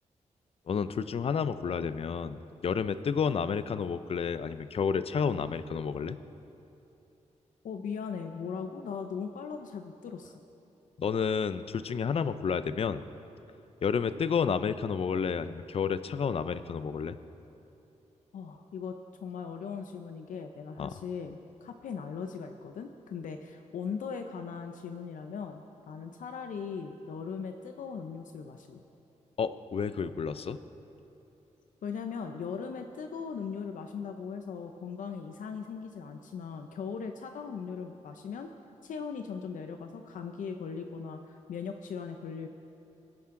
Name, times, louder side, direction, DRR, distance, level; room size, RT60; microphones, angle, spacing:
voice 1, 0.7-6.2 11.0-13.0 13.8-17.2 20.8-20.9 29.4-30.6, left 6 dB, 50° left, 13 dB, 0.5 m, -30 dB
voice 2, 7.6-10.3 18.3-28.8 31.8-38.5 38.8-42.5, left 6 dB, 85° left, 5 dB, 0.7 m, -39 dB
22.5 x 10.5 x 3.8 m, 3.0 s
wide cardioid pair, 120°, 13 cm